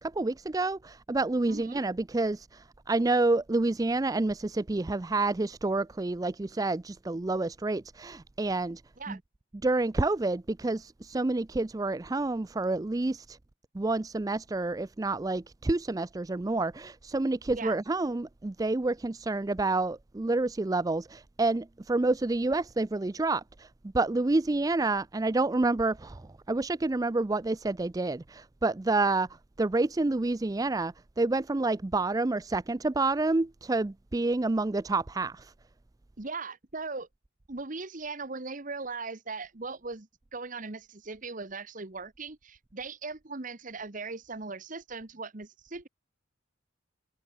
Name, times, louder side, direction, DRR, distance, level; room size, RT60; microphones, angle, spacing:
voice 1, 0.0-8.8 9.1-9.2 9.6-13.4 13.7-23.7 23.9-29.3 29.6-35.5, right 2 dB, 20° right, 0.4 m, -28 dB
voice 2, 1.5-1.8 9.0-9.2 17.5-17.8 36.2-37.1 37.5-45.9, right 3 dB, 40° right, 1.3 m, -39 dB
head